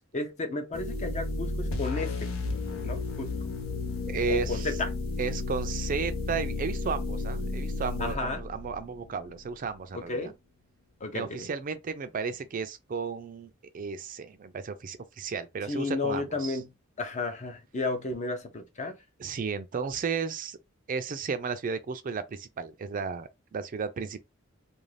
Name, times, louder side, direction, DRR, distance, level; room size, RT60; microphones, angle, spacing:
voice 1, 0.1-2.3 2.8-3.4 4.3-4.9 8.0-8.4 9.9-10.3 11.0-11.5 15.7-16.7 17.0-19.0, left 3 dB, 35° left, 0.6 m, -33 dB
sound 1, 0.7-9.4, left 3 dB, 85° left, 0.7 m, -33 dB
voice 2, 4.1-4.7 5.2-10.3 11.1-16.6 19.2-20.6 20.9-24.2, right 5 dB, 40° right, 0.4 m, -34 dB
2.5 x 2.3 x 3.2 m
head